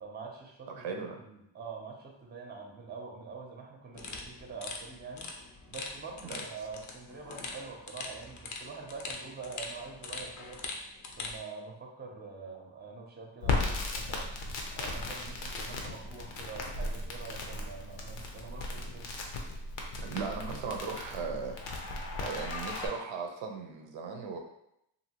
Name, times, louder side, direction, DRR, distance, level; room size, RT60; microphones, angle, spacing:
voice 1, 0.0-5.3 5.7-10.6 11.2-14.3 14.8-19.1, right 4 dB, 25° right, 1 dB, 0.6 m, -45 dB
voice 2, 0.7-1.2 6.2-6.4 20.0-21.6 22.2-24.4, right 5 dB, 85° right, 3 dB, 0.6 m, -37 dB
sound 1, 3.9-11.4, left 3 dB, 45° left, 0.5 m, -42 dB
Crackle, 13.4-22.9, left 3 dB, 85° left, 0.7 m, -36 dB
2.7 x 2.6 x 2.8 m, 0.79 s
cardioid pair, 105°, 44 cm